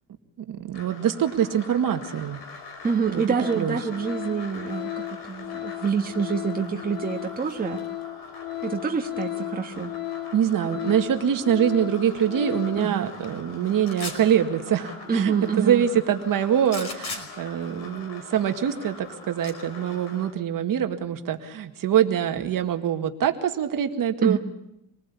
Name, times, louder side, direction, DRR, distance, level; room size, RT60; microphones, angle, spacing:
voice 1, 0.5-2.4 3.1-3.2 3.6-3.8 10.3-24.4, right 9 dB, 45° right, 7 dB, 2.0 m, -24 dB
sound 1, 0.7-20.3, left 3 dB, 55° left, 4.7 m, -44 dB
Organ, 2.3-2.4 2.9-3.0 3.3-12.9 13.2-13.4, left 14 dB, 80° left, 2.7 m, -35 dB
voice 2, 2.8-7.8 8.6-9.9 12.7-13.1 15.1-15.8 24.2-24.4, right 6 dB, 20° right, 2 dB, 1.6 m, -26 dB
sound 2, 13.9-14.3 16.7-17.2 19.4-19.5, left 3 dB, 35° left, 5.4 m, -34 dB
26.0 x 19.5 x 8.5 m, 0.83 s
cardioid pair, 130°, 45 cm